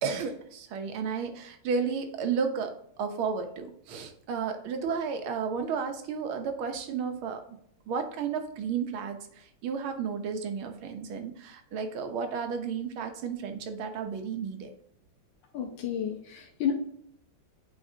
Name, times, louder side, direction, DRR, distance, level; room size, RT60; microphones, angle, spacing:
voice 1, 0.0-7.4 7.9-14.7, right 6 dB, 80° right, 6 dB, 1.7 m, -33 dB
voice 2, 15.5-16.7, left 9 dB, 70° left, 1 dB, 1.4 m, -31 dB
8.6 x 4.1 x 2.7 m, 0.70 s
omnidirectional pair, 2.3 m